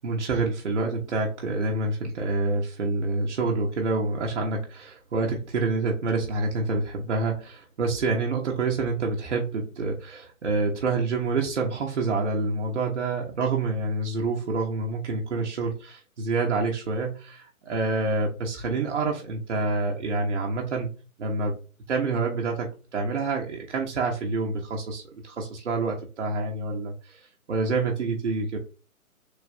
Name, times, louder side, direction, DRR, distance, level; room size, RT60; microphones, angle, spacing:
voice 1, 0.0-20.9 21.2-21.6 21.9-27.2 27.5-28.6, right 3 dB, 55° right, -1 dB, 1.2 m, -27 dB
6.6 x 3.0 x 2.7 m, 0.35 s
figure-of-eight pair, 145°, 43 cm